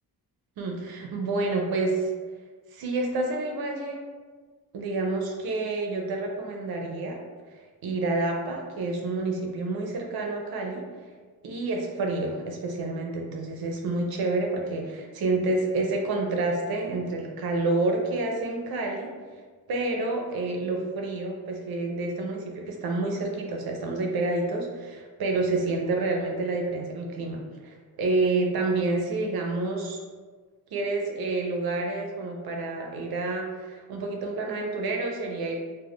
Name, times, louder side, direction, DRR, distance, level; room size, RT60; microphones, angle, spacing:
voice 1, 0.6-2.1 2.7-4.0 4.7-7.2 7.8-10.8 11.4-19.1 19.7-30.0 30.7-35.6, right 2 dB, 70° right, 1 dB, 0.6 m, -28 dB
2.3 x 2.1 x 3.5 m, 1.5 s
wide cardioid pair, 155°, 37 cm